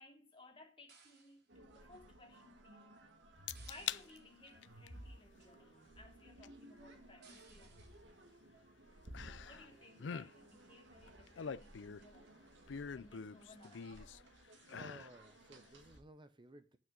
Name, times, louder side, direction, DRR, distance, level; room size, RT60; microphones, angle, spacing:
voice 1, 0.0-3.0 3.6-8.1 9.2-12.5 12.9-14.0, left 2 dB, 30° left, 2.9 m, -60 dB
sound 1, 0.9-1.5 3.5-4.5 7.2-8.1 9.1-9.5 10.1-10.7 11.0-11.1 11.4-11.8 12.3-12.7 13.0-13.1 13.4-13.9 14.5-14.7 15.6-15.9, right 5 dB, 60° right, 3.2 m, -66 dB
sound 2, 1.5-16.0, right 1 dB, 80° right, 2.1 m, -58 dB
sound 3, 3.5-4.0 4.5-4.9 6.4-6.5 9.1-9.7 10.0-10.3 11.1-12.2 12.7-14.2 14.6-15.1 15.6-15.7, left 7 dB, 75° left, 0.5 m, -44 dB
voice 2, 14.7-16.8, right 2 dB, 25° right, 0.6 m, -56 dB
9.4 x 6.1 x 7.3 m
head